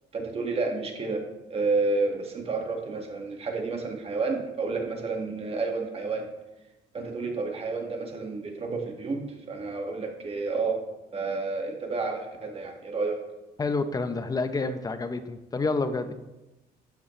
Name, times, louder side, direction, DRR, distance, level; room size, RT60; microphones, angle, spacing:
voice 1, 0.1-1.2 1.5-6.2 6.9-10.8 11.1-13.2, right 3 dB, 35° right, 2 dB, 2.1 m, -30 dB
voice 2, 13.6-16.1, left 3 dB, 20° left, 9 dB, 0.9 m, -28 dB
12.0 x 8.4 x 3.3 m, 1.0 s
cardioid pair, 110°, 17 cm